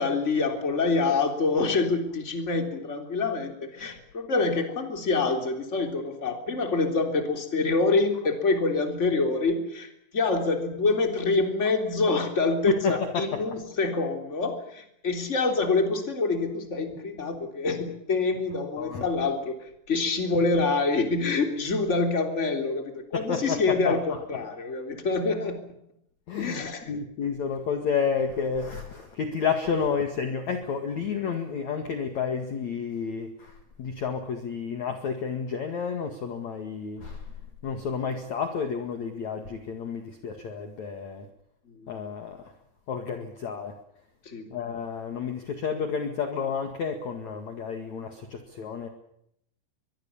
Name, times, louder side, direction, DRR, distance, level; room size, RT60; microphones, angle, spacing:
voice 1, 0.0-25.6 26.4-27.0 41.6-42.1 44.2-44.5, left 3 dB, 15° left, 6 dB, 3.2 m, -26 dB
voice 2, 12.7-13.2 18.8-19.0 23.1-24.2 26.3-37.3 37.6-41.3 41.9-42.5 42.9-43.7 44.5-48.9, left 6 dB, 50° left, 7 dB, 2.7 m, -31 dB
23.5 x 23.0 x 7.2 m, 0.75 s
omnidirectional pair, 5.1 m